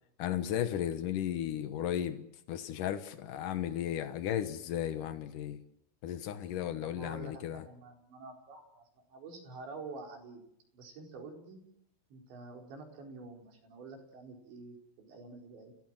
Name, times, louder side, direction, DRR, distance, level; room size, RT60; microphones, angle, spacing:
voice 1, 0.2-5.6 6.0-7.6, left 10 dB, 90° left, 10 dB, 1.8 m, -35 dB
voice 2, 6.8-10.4 10.7-11.6 12.1-15.7, right 3 dB, 65° right, 2 dB, 6.8 m, -48 dB
30.0 x 18.0 x 7.7 m, 0.76 s
omnidirectional pair, 5.7 m